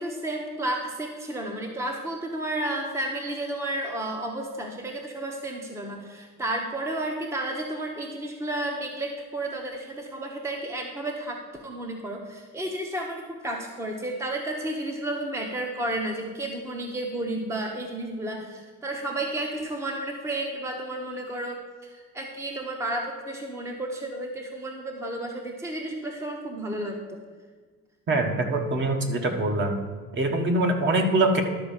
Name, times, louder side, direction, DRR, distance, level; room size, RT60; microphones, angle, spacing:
voice 1, 0.0-27.2, right 1 dB, 10° right, 2 dB, 0.9 m, -32 dB
voice 2, 28.1-29.7 30.1-31.4, right 2 dB, 35° right, 4 dB, 1.3 m, -23 dB
12.0 x 4.4 x 7.2 m, 1.5 s
cardioid pair, 140°, 33 cm